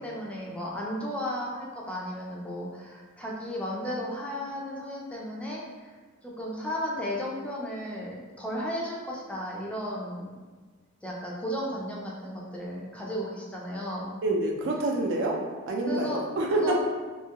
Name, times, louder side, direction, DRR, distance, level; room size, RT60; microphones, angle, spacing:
voice 1, 0.0-5.9 6.2-10.3 11.0-14.1 15.9-16.2 16.5-16.8, equal, 5° left, -4 dB, 0.4 m, -34 dB
voice 2, 14.2-15.4 15.7-16.8, right 2 dB, 60° right, 0 dB, 0.4 m, -27 dB
2.7 x 2.3 x 2.8 m, 1.4 s
head